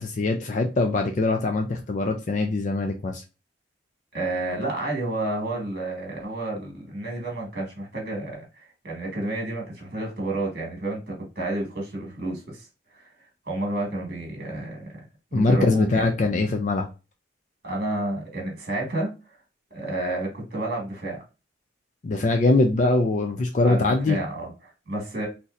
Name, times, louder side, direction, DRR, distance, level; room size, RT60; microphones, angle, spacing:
voice 1, 0.0-3.2 15.3-16.9 22.0-24.2, left 2 dB, 40° left, 4 dB, 0.4 m, -22 dB
voice 2, 4.1-12.7 12.9-13.1 13.5-15.0 15.3-16.1 17.6-19.1 19.7-21.2 23.6-25.3, right 2 dB, 55° right, 0 dB, 1.5 m, -30 dB
4.0 x 2.7 x 2.5 m, 0.30 s
head